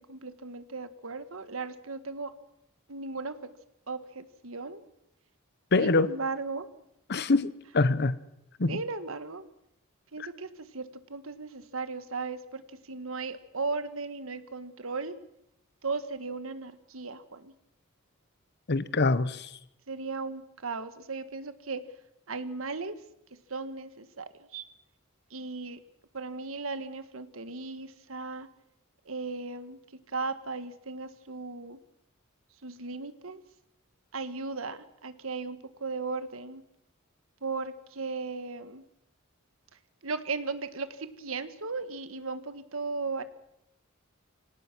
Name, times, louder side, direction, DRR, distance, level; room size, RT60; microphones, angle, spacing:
voice 1, 0.1-2.3 2.9-3.3 3.9-4.8 5.8-6.7 8.7-9.4 10.1-12.6 12.9-15.2 15.8-17.5 19.9-21.8 22.3-22.9 23.5-24.6 25.3-25.8 26.1-28.5 29.1-29.8 30.1-31.8 32.6-33.4 34.1-36.6 37.4-38.8 40.0-43.2, right 4 dB, 70° right, 11 dB, 1.6 m, -36 dB
voice 2, 5.7-6.1 7.1-8.2 8.6-8.8 18.7-19.6, left 3 dB, 55° left, 16 dB, 1.0 m, -25 dB
25.0 x 17.5 x 6.2 m, 0.81 s
head